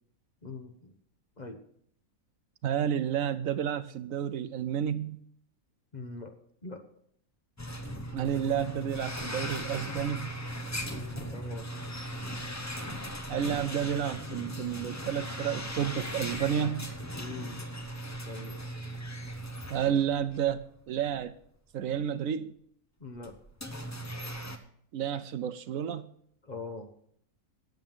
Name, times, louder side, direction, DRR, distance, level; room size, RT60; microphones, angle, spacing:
voice 1, 0.4-1.0 1.4-1.6 5.9-6.4 6.6-6.8 10.9-11.7 17.2-17.6 18.3-18.6 23.0-23.4 26.4-26.9, left 3 dB, 35° left, 5 dB, 1.1 m, -42 dB
voice 2, 2.6-5.2 8.1-10.3 13.3-16.9 19.7-21.3 21.7-22.5 24.9-26.1, right 9 dB, 70° right, 12 dB, 1.0 m, -31 dB
sound 1, 7.6-20.7 21.0-21.2 22.0-22.1 23.2-24.6, equal, 15° left, 0.7 m, -38 dB
9.5 x 8.0 x 7.3 m, 0.66 s
omnidirectional pair, 1.5 m